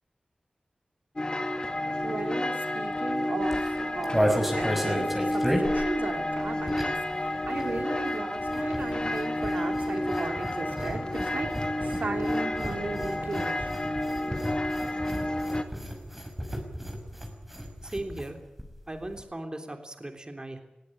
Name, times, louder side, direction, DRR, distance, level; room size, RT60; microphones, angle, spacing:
sound 1, 1.2-15.6, left 1 dB, 30° left, 2.2 m, -30 dB
voice 1, 2.0-11.5 11.8-13.7, right 3 dB, 85° right, 4 dB, 2.8 m, -36 dB
sound 2, 3.4-7.1 7.4-18.3 18.6-18.7 18.9-19.2, equal, 5° right, 5.7 m, -33 dB
voice 2, 17.8-18.4 18.9-20.6, right 1 dB, 30° right, 5 dB, 3.3 m, -37 dB
20.5 x 16.5 x 9.9 m, 0.95 s
wide cardioid pair, 70°, 3 cm